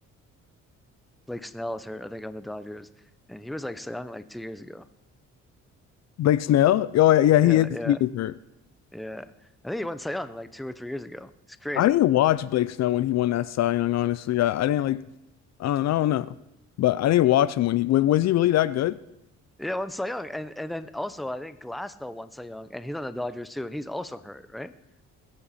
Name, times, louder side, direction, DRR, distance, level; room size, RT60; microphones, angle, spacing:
voice 1, 1.3-2.9 3.3-4.8 7.4-8.0 8.9-9.3 9.6-11.3 11.6-11.9 19.6-24.7, left 1 dB, ahead, 0.6 m, -34 dB
voice 2, 6.2-8.3 11.8-15.1 15.6-16.3 16.8-19.0, left 13 dB, 60° left, 0.4 m, -21 dB
19.5 x 8.8 x 4.2 m
cardioid pair, 90°, 30 cm